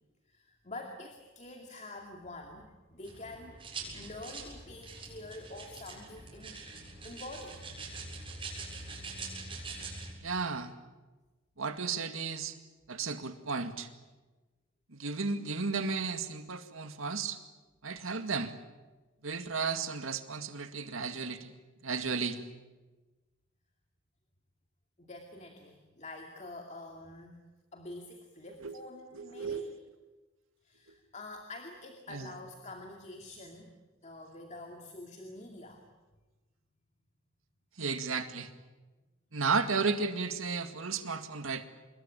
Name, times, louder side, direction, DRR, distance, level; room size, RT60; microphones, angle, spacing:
voice 1, 0.3-6.6 7.0-7.7 21.1-21.2 25.0-27.4 27.7-29.8 30.6-33.7 34.0-35.9, left 2 dB, 35° left, 3 dB, 2.4 m, -47 dB
sound 1, 3.0-10.1, right 3 dB, 25° right, 7.4 m, -44 dB
voice 2, 10.2-10.7 11.6-12.6 12.9-13.9 14.9-17.4 17.8-18.5 19.2-21.5 21.8-22.4 28.6-28.7 29.1-29.7 32.1-32.3 37.8-38.5 39.3-41.7, right 4 dB, 90° right, 8 dB, 2.1 m, -34 dB
26.5 x 22.0 x 9.0 m, 1.2 s
head